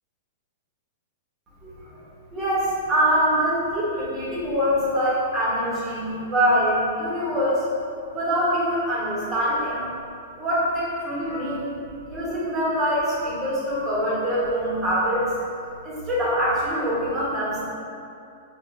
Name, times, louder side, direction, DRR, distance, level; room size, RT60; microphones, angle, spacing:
voice 1, 1.6-1.9 2.3-7.7 8.1-9.9 10.4-11.7 12.1-15.3 15.8-17.6, equal, 25° right, -7 dB, 1.2 m, -24 dB
4.7 x 2.4 x 2.6 m, 2.5 s
hypercardioid pair, 120°, 0 cm